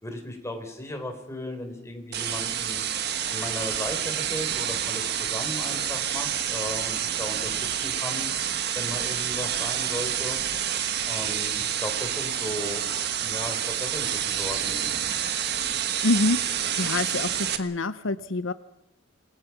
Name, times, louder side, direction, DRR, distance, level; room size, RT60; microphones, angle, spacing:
voice 1, 0.0-2.9 3.3-8.3 8.8-10.4 11.1-12.9 13.2-14.8, left 1 dB, 15° left, 5 dB, 3.9 m, -36 dB
sound 1, 2.1-17.6, right 9 dB, 55° right, 1.5 m, -28 dB
voice 2, 16.0-18.5, left 2 dB, 75° left, 13 dB, 0.8 m, -26 dB
28.0 x 20.0 x 5.9 m, 0.83 s
head